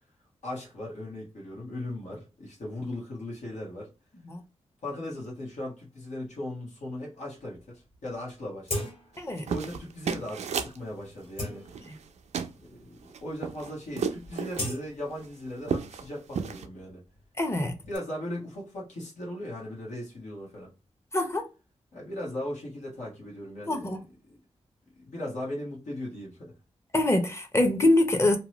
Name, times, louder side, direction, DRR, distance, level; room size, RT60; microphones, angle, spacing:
voice 1, 0.4-3.9 4.8-8.9 9.5-11.6 12.6-17.0 17.9-20.7 21.9-24.0 24.3-24.4 25.0-26.5, left 1 dB, 90° left, 1.2 m, -38 dB
sound 1, 7.6-7.7 7.9-8.0 8.6-9.3 9.7-9.9 10.5-10.7 11.1-12.2 12.9-13.0 13.3-13.6 13.9-15.7 16.0-18.0, left 1 dB, 50° left, 1.5 m, -38 dB
sound 2, 9.2-10.8 11.7-12.1 12.3-12.5 13.0-14.7 15.2-15.3 15.6-16.1 16.3-16.7, right 6 dB, 75° right, 0.4 m, -32 dB
voice 2, 17.4-17.7 21.1-21.4 23.7-24.0 26.9-28.4, left 1 dB, 25° left, 0.7 m, -24 dB
2.8 x 2.2 x 2.9 m
cardioid pair, 80°, 12 cm